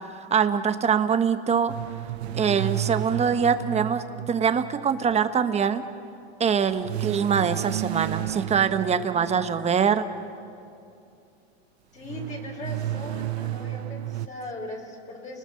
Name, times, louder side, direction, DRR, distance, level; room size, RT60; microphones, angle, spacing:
voice 1, 0.2-1.7 2.3-5.8 6.4-10.1, right 7 dB, 20° right, 10 dB, 1.2 m, -23 dB
sound 1, 1.7-5.2 6.8-9.9 12.0-14.3, right 14 dB, 80° right, 0.8 m, -32 dB
voice 2, 11.9-15.4, left 2 dB, 25° left, 0 dB, 4.3 m, -38 dB
30.0 x 20.5 x 6.6 m, 2.6 s
supercardioid pair, 120°, 31 cm